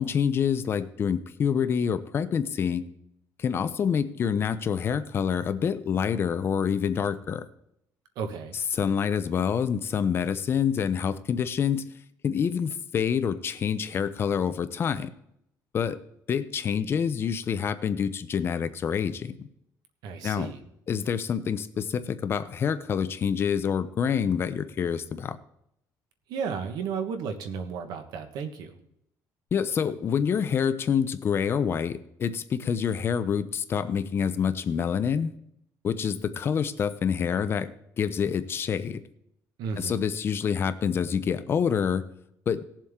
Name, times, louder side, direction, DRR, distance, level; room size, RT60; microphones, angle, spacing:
voice 1, 0.0-2.8 3.4-7.4 8.7-11.8 12.2-15.1 15.7-16.0 16.3-19.5 20.2-20.5 20.9-25.4 29.5-35.3 35.8-39.0 39.8-42.0 42.5-42.6, left 7 dB, 35° left, 12 dB, 0.6 m, -27 dB
voice 2, 8.1-8.6 20.0-20.6 26.3-28.7 39.6-40.1, right 6 dB, 75° right, 7 dB, 1.4 m, -33 dB
18.0 x 7.3 x 3.7 m, 0.75 s
cardioid pair, 155°, 7 cm